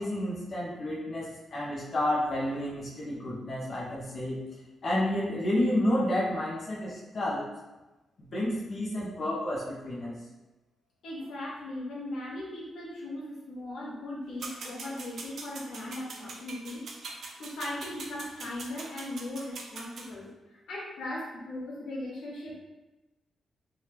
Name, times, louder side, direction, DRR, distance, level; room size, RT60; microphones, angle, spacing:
voice 1, 0.0-4.4 4.8-7.5 8.2-10.1, left 1 dB, 40° left, -5 dB, 0.6 m, -30 dB
voice 2, 11.0-16.8 17.4-22.6, left 1 dB, 85° left, -5 dB, 0.9 m, -38 dB
sound 1, 14.4-20.1, right 3 dB, 60° right, 0.4 m, -42 dB
2.9 x 2.3 x 3.3 m, 1.1 s
wide cardioid pair, 135°, 0 cm